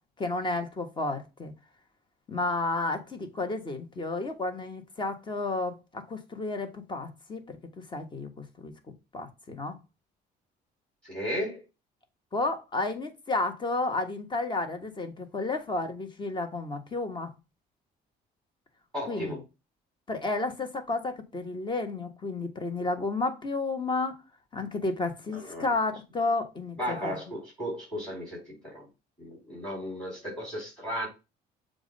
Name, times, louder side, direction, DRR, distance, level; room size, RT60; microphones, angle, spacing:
voice 1, 0.2-1.5 2.3-7.4 7.8-8.3 8.6-8.7 9.1-9.8 12.3-17.3 19.1-19.4 20.1-24.2 24.5-27.2, left 2 dB, 25° left, 1.3 m, -31 dB
voice 2, 11.0-11.6 18.9-19.4 25.3-25.7 26.8-28.9 29.2-31.1, equal, 5° left, 4.1 m, -35 dB
7.1 x 2.6 x 5.3 m
cardioid pair, 110°, 17 cm